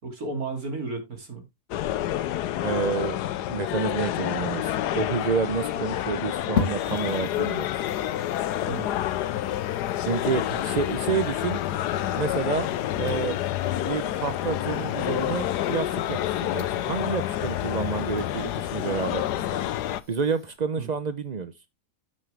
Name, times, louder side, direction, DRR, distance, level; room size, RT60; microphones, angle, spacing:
voice 1, 0.0-1.4 8.7-9.0 10.5-10.6 20.8-20.9, right 3 dB, 60° right, 3.1 m, -33 dB
sound 1, 1.7-20.0, left 12 dB, 80° left, 1.2 m, -28 dB
voice 2, 2.6-3.2 3.5-7.8 10.0-11.6 12.2-12.7 13.0-13.4 13.8-19.2 20.1-21.5, right 5 dB, 80° right, 0.3 m, -29 dB
sound 2, 6.6-20.6, left 5 dB, 50° left, 1.6 m, -40 dB
9.4 x 7.6 x 3.3 m
omnidirectional pair, 1.8 m